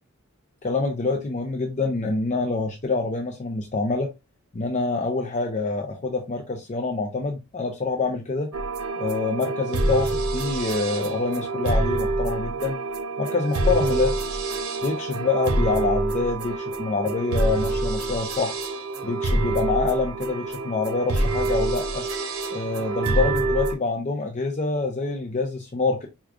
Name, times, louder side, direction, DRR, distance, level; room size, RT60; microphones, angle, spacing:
voice 1, 0.6-4.1 4.5-8.5 9.0-12.8 13.2-14.1 14.8-18.6 19.0-22.1 22.5-26.1, left 3 dB, 35° left, 0.5 m, -26 dB
sound 1, 8.5-23.7, right 2 dB, 85° right, 0.8 m, -26 dB
4.7 x 2.4 x 2.4 m
head